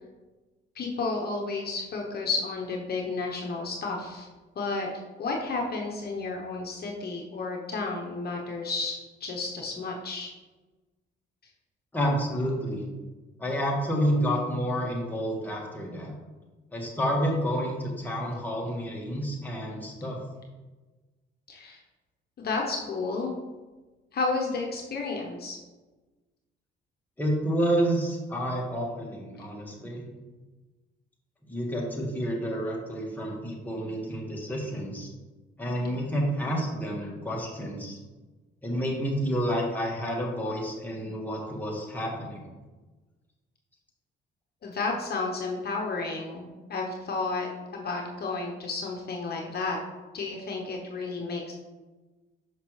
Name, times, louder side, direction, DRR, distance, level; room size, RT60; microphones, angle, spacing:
voice 1, 0.7-4.3 4.6-4.9 5.2-10.3 21.5-21.8 22.4-23.3 24.1-25.6 44.6-49.8 50.1-51.5, left 3 dB, 50° left, 0 dB, 0.9 m, -32 dB
voice 2, 11.9-12.8 13.4-16.1 16.7-20.2 27.2-30.0 31.5-35.1 35.6-38.0 38.6-42.5, equal, 10° left, -2 dB, 1.6 m, -29 dB
6.0 x 5.8 x 3.2 m, 1.2 s
cardioid pair, 90°, 20 cm